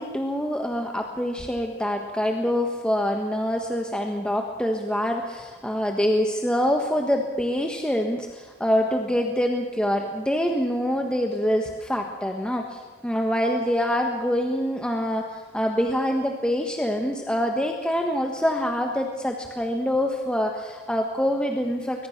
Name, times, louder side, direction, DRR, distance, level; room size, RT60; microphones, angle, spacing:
voice 1, 0.0-22.1, equal, 5° left, 2 dB, 1.4 m, -25 dB
23.0 x 20.0 x 6.0 m, 1.4 s
head